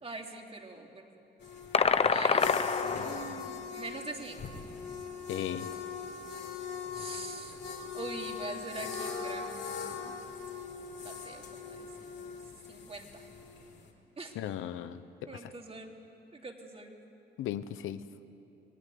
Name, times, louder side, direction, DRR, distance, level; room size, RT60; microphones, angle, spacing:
voice 1, 0.0-1.2 2.1-2.5 2.8-4.5 6.9-7.6 7.9-10.1 11.0-12.4 12.7-13.2 14.2-14.3 15.3-15.9 16.3-16.9, right 3 dB, 30° right, 1 dB, 3.3 m, -44 dB
sound 1, 1.4-13.9, left 6 dB, 65° left, 3.9 m, -41 dB
sound 2, 1.7-3.5, left 5 dB, 30° left, 0.8 m, -27 dB
voice 2, 5.3-5.7 14.3-15.5 17.4-18.0, left 11 dB, 85° left, 12 dB, 1.0 m, -37 dB
27.0 x 19.0 x 9.4 m, 2.8 s
cardioid pair, 90°, 20 cm